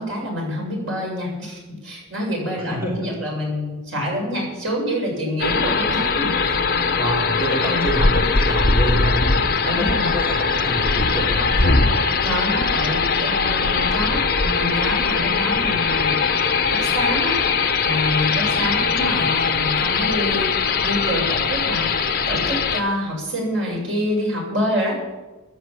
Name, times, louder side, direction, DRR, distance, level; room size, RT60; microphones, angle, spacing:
voice 1, 0.0-6.6 7.6-7.9 9.7-10.1 12.2-16.2 16.7-17.4 17.8-20.5 20.8-25.0, equal, 85° right, -2 dB, 7.6 m, -26 dB
voice 2, 2.5-3.2 6.9-11.8 18.6-19.3, equal, 10° right, -3 dB, 3.1 m, -27 dB
sound 1, 5.4-22.8, left 4 dB, 50° left, 1.2 m, -20 dB
14.0 x 10.5 x 8.5 m, 1.1 s
head